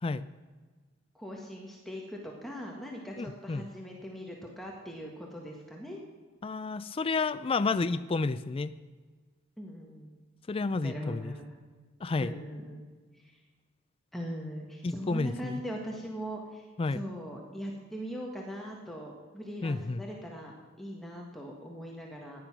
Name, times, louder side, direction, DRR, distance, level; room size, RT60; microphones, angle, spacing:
voice 1, 1.1-6.0 9.6-10.1 10.8-11.4 12.2-12.8 13.2-13.3 14.1-16.7 16.9-22.4, equal, ahead, -1 dB, 1.6 m, -40 dB
voice 2, 3.2-3.7 6.4-8.7 10.5-11.3 12.0-12.3 14.8-15.6 16.8-17.0 19.6-20.0, left 3 dB, 30° left, 12 dB, 0.4 m, -31 dB
15.0 x 10.5 x 6.1 m, 1.4 s
head